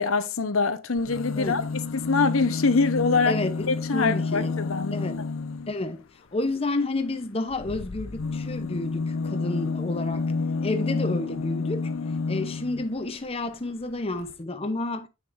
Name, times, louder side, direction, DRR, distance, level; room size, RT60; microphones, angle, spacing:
voice 1, 0.0-1.7 1.9-3.4 3.7-5.0, left 4 dB, 90° left, 0.9 m, -24 dB
sound 1, 1.0-5.8 7.5-13.0 13.9-14.0 14.2-14.3, left 4 dB, 70° left, 0.5 m, -30 dB
voice 2, 3.3-4.5 4.9-5.3 5.7-6.0 6.3-10.3 10.6-11.9 12.3-15.1, left 2 dB, 30° left, 0.7 m, -30 dB
8.2 x 6.5 x 2.6 m
head